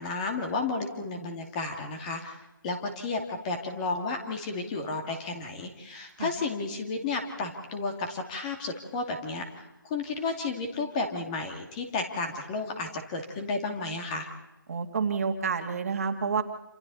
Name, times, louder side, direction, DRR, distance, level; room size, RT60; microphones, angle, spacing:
voice 1, 0.0-14.3, left 3 dB, 20° left, 4 dB, 2.6 m, -32 dB
voice 2, 14.7-16.4, right 5 dB, 40° right, 5 dB, 2.4 m, -29 dB
28.0 x 27.5 x 4.3 m, 0.98 s
figure-of-eight pair, 165°, 11 cm